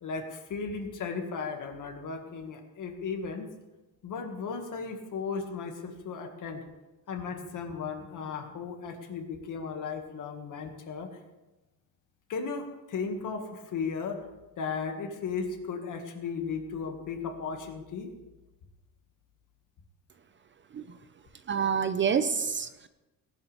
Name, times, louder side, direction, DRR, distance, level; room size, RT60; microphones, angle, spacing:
voice 1, 0.0-3.5 4.0-6.6 7.1-11.1 12.3-14.2 14.6-18.1, left 5 dB, 60° left, 4 dB, 1.9 m, -35 dB
voice 2, 21.5-22.9, right 6 dB, 35° right, 12 dB, 0.5 m, -28 dB
18.5 x 12.0 x 3.4 m, 1.1 s
cardioid pair, 170°, 36 cm